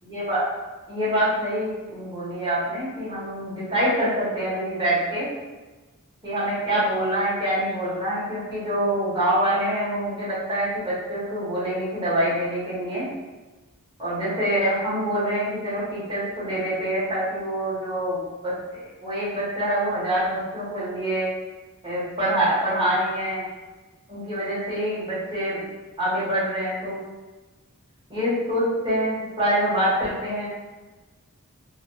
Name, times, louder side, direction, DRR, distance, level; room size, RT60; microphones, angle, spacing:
voice 1, 0.0-0.4 0.9-5.3 6.2-13.0 14.0-21.3 21.8-23.4 24.1-25.7 26.0-27.0 28.1-30.5, right 1 dB, 25° right, -9 dB, 1.1 m, -25 dB
2.6 x 2.2 x 2.6 m, 1.2 s
head